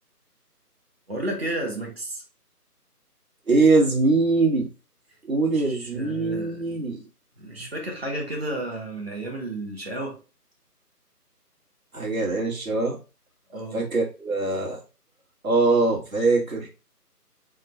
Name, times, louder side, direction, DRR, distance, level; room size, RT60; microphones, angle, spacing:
voice 1, 1.1-2.2 5.5-6.8 7.4-10.2 13.5-13.9, right 1 dB, 40° right, 0 dB, 1.2 m, -32 dB
voice 2, 3.5-4.7 5.3-7.0 7.5-7.7 11.9-13.0 13.7-14.8 15.4-16.7, right 3 dB, 60° right, -1 dB, 1.6 m, -22 dB
3.6 x 2.3 x 4.2 m, 0.32 s
figure-of-eight pair, 175°, 48 cm